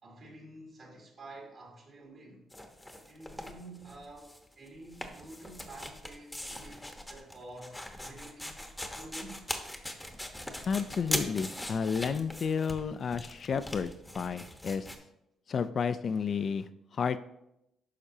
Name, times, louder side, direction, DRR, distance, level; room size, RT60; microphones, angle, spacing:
voice 1, 0.0-2.4 2.9-9.4, right 2 dB, 55° right, 2.7 m, -49 dB
sound 1, 2.5-4.4 4.7-15.0, left 1 dB, 5° left, 1.0 m, -40 dB
voice 2, 10.6-14.9 15.5-17.2, left 6 dB, 50° left, 0.4 m, -31 dB
9.9 x 5.8 x 2.7 m
cardioid pair, 90°, 0 cm